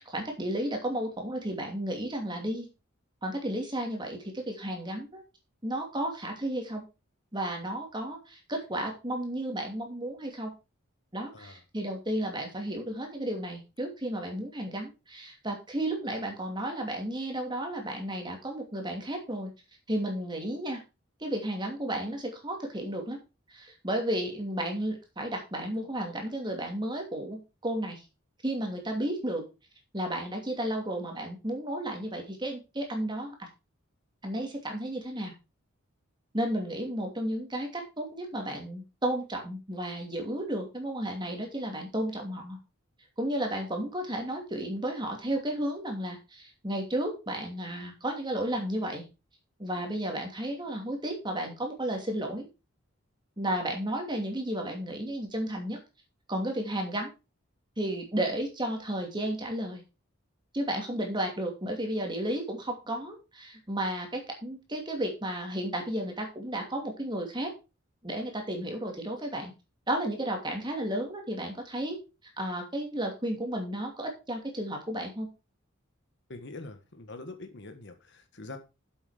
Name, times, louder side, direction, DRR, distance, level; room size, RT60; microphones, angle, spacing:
voice 1, 0.0-2.7 3.2-5.2 5.6-6.8 7.3-10.5 11.1-19.5 19.9-20.8 21.2-23.2 23.5-28.0 28.4-29.5 29.9-33.5 34.2-35.3 36.3-42.6 43.2-49.1 49.6-52.5 53.4-55.8 56.3-57.1 57.8-59.8 60.5-67.5 68.0-69.5 69.9-72.0 72.4-75.3, right 1 dB, 20° right, 3 dB, 2.6 m, -33 dB
voice 2, 76.3-78.6, left 2 dB, 55° left, 7 dB, 1.4 m, -44 dB
8.3 x 7.4 x 5.0 m, 0.28 s
head